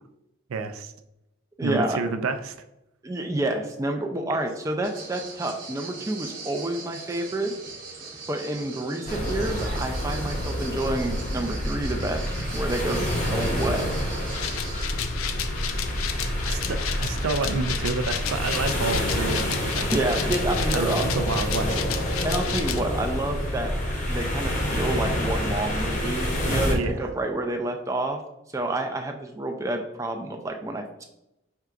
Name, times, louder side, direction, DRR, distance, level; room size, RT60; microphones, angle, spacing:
voice 1, 0.5-0.9 1.6-2.5 16.4-19.9 20.7-21.8 26.7-27.1, right 4 dB, 90° right, 8 dB, 0.4 m, -29 dB
voice 2, 1.6-2.0 3.0-7.5 8.3-13.9 19.9-21.0 22.2-23.7 24.1-28.2 28.5-31.0, right 1 dB, 15° right, 3 dB, 0.3 m, -29 dB
sound 1, 4.8-14.9, right 4 dB, 45° right, 1.0 m, -40 dB
sound 2, 9.1-26.7, equal, 35° left, 0.7 m, -28 dB
sound 3, 14.3-22.8, left 9 dB, 85° left, 0.4 m, -33 dB
4.5 x 3.8 x 2.4 m, 0.86 s
head